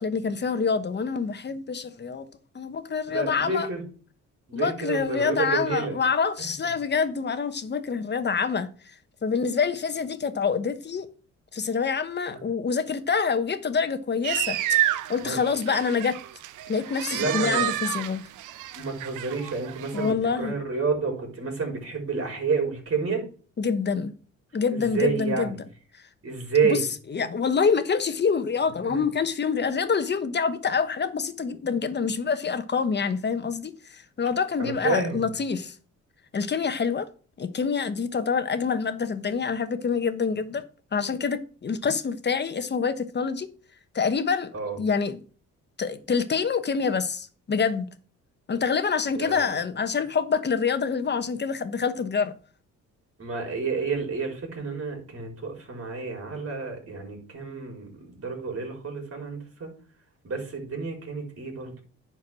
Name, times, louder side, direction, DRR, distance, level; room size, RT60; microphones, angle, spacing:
voice 1, 0.0-2.3 2.5-3.7 4.5-8.7 9.2-11.1 11.5-16.2 16.7-18.2 19.9-20.5 23.6-24.1 24.5-25.6 26.6-26.8 27.1-35.7 36.3-37.1 37.4-40.6 40.9-43.5 43.9-44.5 44.8-45.2 45.8-47.9 48.5-52.3, left 5 dB, 35° left, 1.1 m, -26 dB
voice 2, 3.1-3.8 4.5-5.9 6.4-6.5 12.3-12.4 15.2-15.4 17.1-17.7 18.7-23.2 24.7-25.6 26.2-26.8 28.8-29.0 34.6-35.2 44.5-44.8 49.1-49.5 53.2-59.7 60.2-61.8, right 4 dB, 50° right, 4.5 m, -29 dB
sound 1, 14.2-20.1, right 13 dB, 85° right, 0.7 m, -30 dB
10.5 x 4.7 x 6.2 m
cardioid pair, 90°, 30 cm